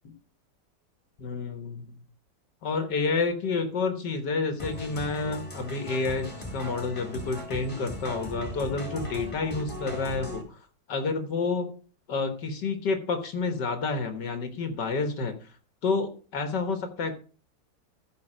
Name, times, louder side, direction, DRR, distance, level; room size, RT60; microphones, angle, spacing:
voice 1, 1.2-2.0 2.6-10.6 10.9-11.7 12.1-15.4 15.8-17.1, left 4 dB, 75° left, 7 dB, 2.0 m, -29 dB
sound 1, 4.6-10.4, left 1 dB, 15° left, 3.1 m, -38 dB
14.5 x 5.4 x 5.0 m, 0.38 s
omnidirectional pair, 1.9 m